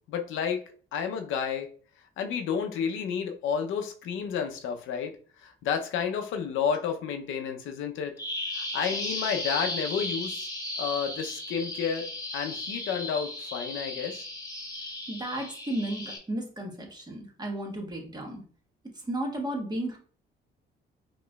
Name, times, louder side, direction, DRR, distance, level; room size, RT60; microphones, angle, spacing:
voice 1, 0.1-0.6 0.9-1.7 2.2-5.1 5.4-8.1 8.5-10.5 10.8-12.1 12.3-14.2, left 7 dB, 85° left, 5 dB, 0.6 m, -31 dB
Bird vocalization bird call bird song, 8.2-16.2, left 1 dB, 20° left, 1.1 m, -35 dB
voice 2, 15.1-18.4 19.0-20.0, right 1 dB, 20° right, 1 dB, 1.3 m, -33 dB
5.0 x 3.0 x 2.3 m, 0.43 s
cardioid pair, 90°, 20 cm